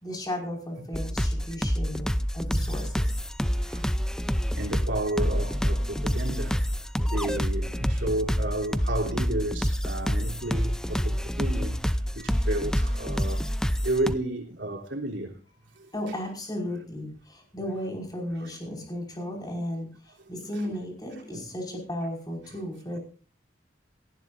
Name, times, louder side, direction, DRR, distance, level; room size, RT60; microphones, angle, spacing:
voice 1, 0.0-2.1 2.3-3.2 15.9-23.0, left 1 dB, 20° left, 5.5 m, -35 dB
sound 1, 0.9-14.1, equal, 5° left, 0.5 m, -27 dB
voice 2, 3.4-3.9 4.5-6.6 7.1-13.4 13.8-15.4 15.8-15.9 20.7-20.8 21.3-21.5, right 1 dB, 75° right, 3.4 m, -32 dB
18.0 x 16.0 x 2.6 m
head